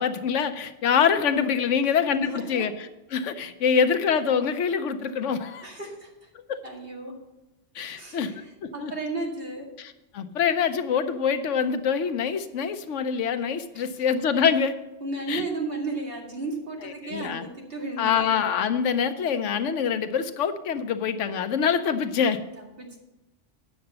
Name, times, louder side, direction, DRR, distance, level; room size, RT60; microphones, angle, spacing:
voice 1, 0.0-5.6 6.5-6.6 7.7-8.3 8.6-8.9 9.8-14.7 15.3-15.4 16.8-17.4 18.0-22.4, left 7 dB, 80° left, 10 dB, 1.0 m, -25 dB
voice 2, 2.3-2.7 5.6-6.3 6.6-7.2 7.9-9.7 13.7-13.9 15.0-18.3 22.6-23.0, right 3 dB, 50° right, -2 dB, 2.4 m, -34 dB
9.3 x 6.8 x 6.6 m, 1.0 s
omnidirectional pair, 1.2 m